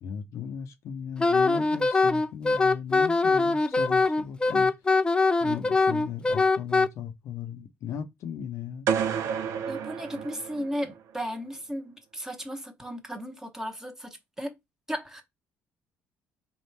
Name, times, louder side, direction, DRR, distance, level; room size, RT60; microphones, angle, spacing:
voice 1, 0.0-4.7 5.4-8.9, left 7 dB, 70° left, 0.7 m, -37 dB
Wind instrument woodwind instrument, 1.2-6.9, left 3 dB, 15° left, 0.4 m, -22 dB
sound 1, 8.9-11.0, right 7 dB, 70° right, 0.6 m, -30 dB
voice 2, 9.7-14.5 14.9-15.2, equal, 10° right, 1.1 m, -35 dB
3.5 x 2.4 x 4.1 m
supercardioid pair, 80°, 5 cm